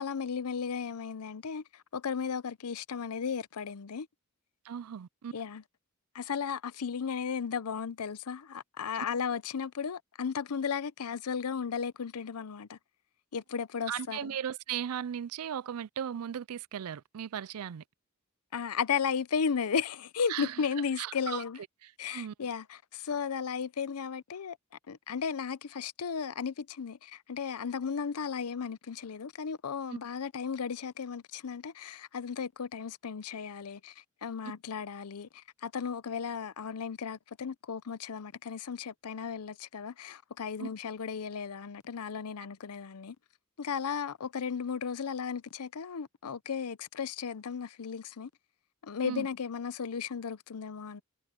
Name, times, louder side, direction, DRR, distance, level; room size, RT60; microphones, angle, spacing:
voice 1, 0.0-4.1 5.3-5.6 6.1-12.8 13.3-14.3 18.5-21.6 22.0-24.6 24.9-43.2 43.6-48.3 48.8-51.0, left 6 dB, 90° left, 0.6 m, -35 dB
voice 2, 4.6-5.3 13.9-17.8 20.3-20.6 21.0-21.4 21.8-22.3 29.9-30.0 40.6-40.7 49.0-49.3, right 9 dB, 80° right, 0.4 m, -37 dB
head